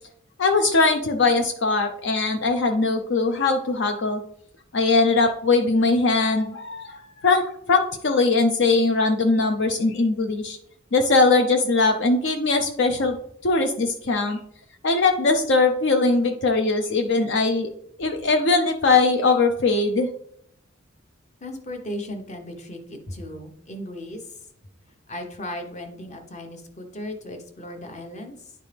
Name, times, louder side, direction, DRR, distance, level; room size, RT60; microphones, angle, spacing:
voice 1, 0.4-4.2 4.7-10.6 10.9-13.2 13.4-14.4 14.8-17.7 18.0-20.1, left 3 dB, 65° left, 5 dB, 0.6 m, -21 dB
voice 2, 21.4-24.5 25.1-28.5, left 1 dB, 35° left, 4 dB, 1.1 m, -36 dB
10.5 x 4.5 x 3.5 m, 0.70 s
head